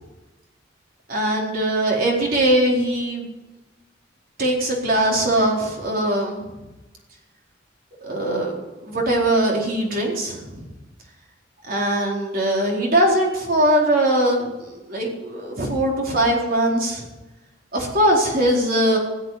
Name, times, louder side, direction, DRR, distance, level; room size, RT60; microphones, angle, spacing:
voice 1, 1.1-3.3 4.4-6.4 8.0-10.6 11.7-17.0 17.7-19.0, right 1 dB, 50° right, -1 dB, 4.3 m, -21 dB
17.0 x 8.1 x 9.5 m, 1.0 s
head